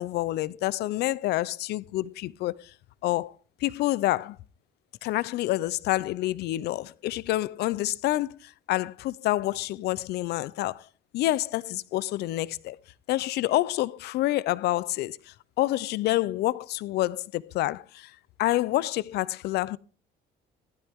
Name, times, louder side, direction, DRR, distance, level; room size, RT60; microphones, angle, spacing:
voice 1, 0.0-2.7 3.0-3.3 3.6-4.4 5.0-10.9 11.1-12.8 13.1-18.1 18.4-19.8, left 16 dB, 75° left, 0.6 m, -28 dB
15.5 x 12.5 x 3.6 m
cardioid pair, 110°, 17 cm